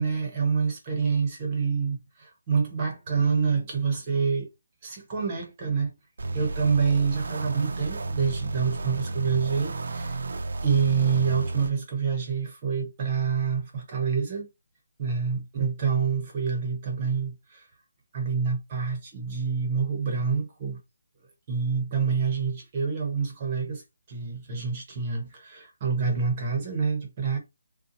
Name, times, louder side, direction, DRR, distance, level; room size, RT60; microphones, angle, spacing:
voice 1, 0.0-4.5 4.8-5.9 6.3-10.2 10.6-14.5 15.0-17.6 18.1-20.8 21.5-23.8 24.1-27.4, right 5 dB, 20° right, 0.9 m, -27 dB
sound 1, 6.2-11.7, right 2 dB, 50° right, 0.5 m, -32 dB
5.3 x 2.2 x 2.9 m
hypercardioid pair, 180°, 0 cm